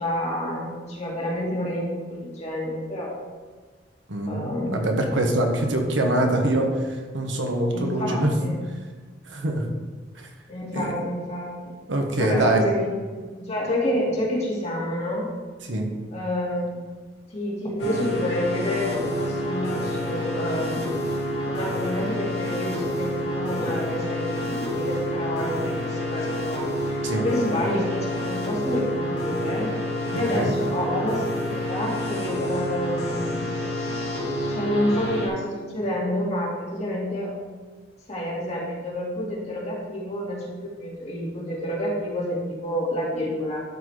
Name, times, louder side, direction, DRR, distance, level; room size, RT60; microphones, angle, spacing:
voice 1, 0.0-3.1 4.3-4.7 7.7-8.6 10.5-11.8 12.2-13.0 13.4-15.3 16.1-16.8 17.3-21.0 21.4-29.7 30.1-33.5 34.5-37.3 38.1-43.6, left 1 dB, 35° left, -5 dB, 2.5 m, -28 dB
voice 2, 4.1-8.3 9.3-9.6 10.2-10.3 10.7-10.9 11.9-12.6 15.6-15.9 27.0-27.2 30.1-30.5, right 1 dB, 80° right, 2 dB, 1.2 m, -24 dB
sound 1, 17.8-35.3, left 1 dB, 65° left, 2.3 m, -28 dB
12.5 x 4.1 x 4.8 m, 1.5 s
head